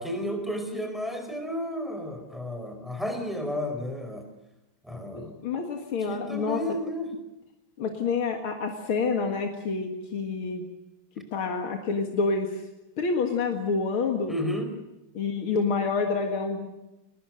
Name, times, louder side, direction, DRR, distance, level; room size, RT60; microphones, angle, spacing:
voice 1, 0.0-4.2 4.8-5.4 6.1-7.1 14.3-14.7, equal, ahead, 5 dB, 4.9 m, -32 dB
voice 2, 5.1-6.6 7.8-10.6 11.3-12.5 13.0-14.4 15.1-16.7, left 4 dB, 85° left, 3 dB, 2.8 m, -28 dB
23.0 x 20.0 x 7.8 m, 0.96 s
omnidirectional pair, 2.3 m